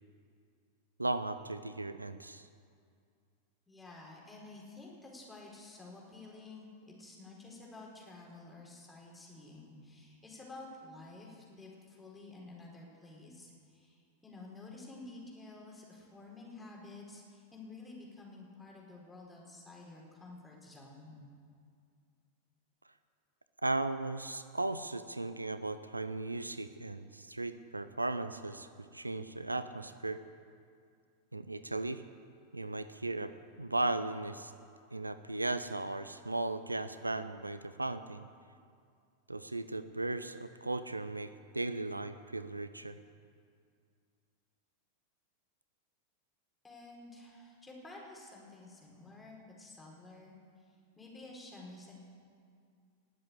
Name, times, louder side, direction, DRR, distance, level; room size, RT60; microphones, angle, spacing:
voice 1, 1.0-2.5 23.6-30.2 31.3-32.0 32.5-33.3 33.6-34.5 34.9-38.3 39.3-43.0, right 2 dB, 85° right, 12 dB, 0.5 m, -36 dB
voice 2, 3.7-21.2 46.6-51.9, left 2 dB, 10° left, -3 dB, 4.3 m, -51 dB
19.5 x 7.7 x 8.2 m, 2.3 s
figure-of-eight pair, 90°, 0 cm